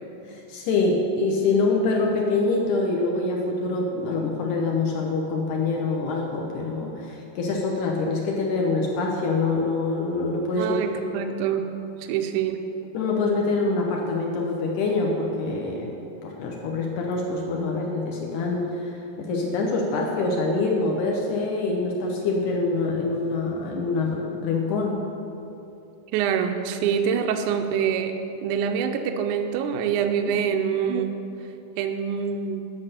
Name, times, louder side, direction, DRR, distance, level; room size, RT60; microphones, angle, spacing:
voice 1, 0.3-10.8 12.9-15.9 16.2-25.0 30.2-30.3, left 3 dB, 70° left, 0 dB, 2.1 m, -25 dB
voice 2, 10.6-11.7 12.0-12.7 26.1-28.2 28.4-31.2 31.8-32.7, right 7 dB, 85° right, 5 dB, 1.8 m, -25 dB
9.8 x 5.7 x 6.6 m, 2.7 s
omnidirectional pair, 4.2 m